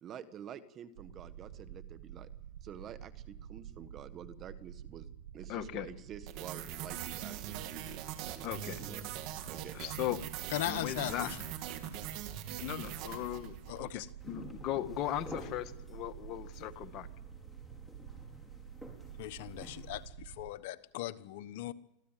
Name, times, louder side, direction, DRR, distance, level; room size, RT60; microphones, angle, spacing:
voice 1, 0.0-2.3 2.6-5.1 5.3-7.6 8.3-9.0 9.5-10.0, right 8 dB, 35° right, 12 dB, 1.6 m, -48 dB
sound 1, 1.0-20.5, right 10 dB, 75° right, 1.7 m, -49 dB
voice 2, 5.5-5.9 8.4-8.8 9.8-10.2 10.7-11.4 12.6-17.1, left 12 dB, 50° left, 9 dB, 1.7 m, -38 dB
sound 2, 6.3-13.8, right 11 dB, 55° right, 2.8 m, -42 dB
voice 3, 10.5-11.4 13.7-14.1 19.2-21.7, left 15 dB, 70° left, 13 dB, 1.1 m, -38 dB
sound 3, 14.2-20.0, left 1 dB, 5° left, 5.3 m, -51 dB
25.5 x 15.5 x 9.2 m, 0.84 s
supercardioid pair, 115°, 0 cm